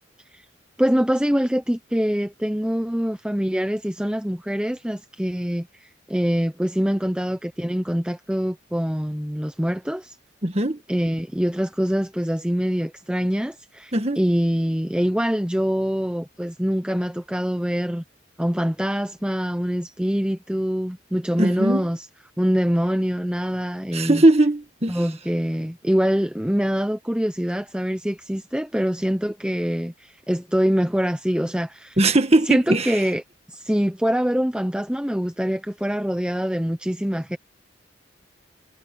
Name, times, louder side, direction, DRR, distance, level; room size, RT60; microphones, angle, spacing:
voice 1, 0.8-10.2 10.9-18.0 18.4-22.0 22.4-24.2 24.9-32.0 32.5-33.2 33.5-37.4, equal, 5° right, 0.8 m, -24 dB
voice 2, 10.4-10.8 13.9-14.2 21.4-21.9 23.9-25.0 32.0-33.0, right 2 dB, 30° right, 1.8 m, -19 dB
head